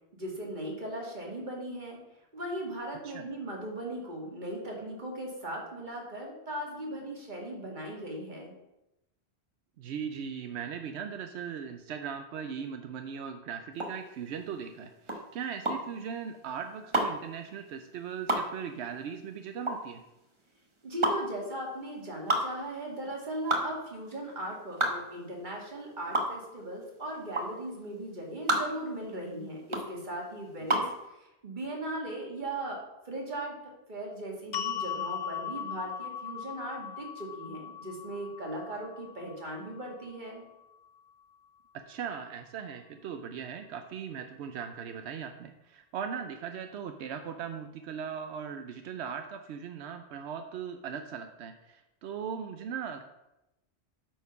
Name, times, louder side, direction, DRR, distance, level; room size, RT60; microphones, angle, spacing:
voice 1, 0.1-2.0 2.3-8.5 20.8-32.8 33.1-33.6 33.9-40.4, right 1 dB, 45° right, -1 dB, 2.1 m, -38 dB
voice 2, 9.8-20.0 41.9-53.0, right 7 dB, 85° right, 7 dB, 0.9 m, -39 dB
sound 1, 13.7-31.0, right 1 dB, 30° right, 1.1 m, -31 dB
sound 2, 34.5-40.7, left 8 dB, 55° left, 0.5 m, -39 dB
8.2 x 4.6 x 5.6 m, 0.93 s
omnidirectional pair, 1.1 m